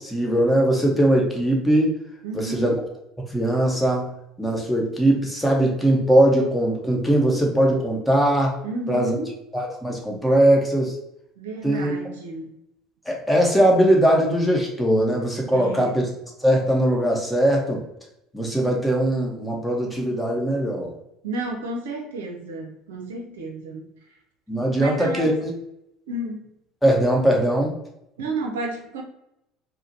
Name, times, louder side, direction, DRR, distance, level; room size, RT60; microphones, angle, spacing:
voice 1, 0.0-1.9 2.3-2.7 3.3-4.1 4.4-8.5 8.9-9.1 9.5-11.0 11.6-11.9 13.1-16.1 16.4-17.8 18.3-20.9 24.5-25.5 26.8-27.7, right 1 dB, 5° left, -1 dB, 1.1 m, -20 dB
voice 2, 2.2-2.8 8.6-9.4 11.4-12.5 15.5-16.0 21.2-23.9 24.8-25.3 26.1-26.5 28.2-29.0, right 2 dB, 80° right, 2 dB, 0.5 m, -31 dB
4.8 x 2.1 x 2.8 m, 0.80 s
hypercardioid pair, 65°, 0 cm